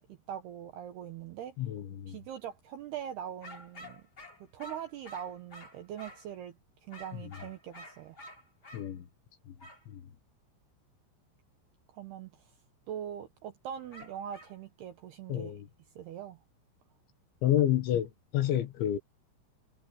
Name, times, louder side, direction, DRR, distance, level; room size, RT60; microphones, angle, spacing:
voice 1, 0.0-1.6 2.1-4.1 4.5-6.6 6.8-8.2 11.9-12.3 12.9-15.5 16.0-16.4, right 9 dB, 75° right, 2.5 m, -42 dB
voice 2, 1.6-2.2 7.1-7.2 8.7-9.1 9.5-9.6 9.9-10.0 15.3-15.7 17.4-19.0, left 12 dB, 70° left, 3.7 m, -29 dB
sound 1, 3.4-6.3 6.9-8.9 9.6-9.8 13.9-14.6, left 1 dB, 20° left, 4.6 m, -50 dB
omnidirectional pair, 5.9 m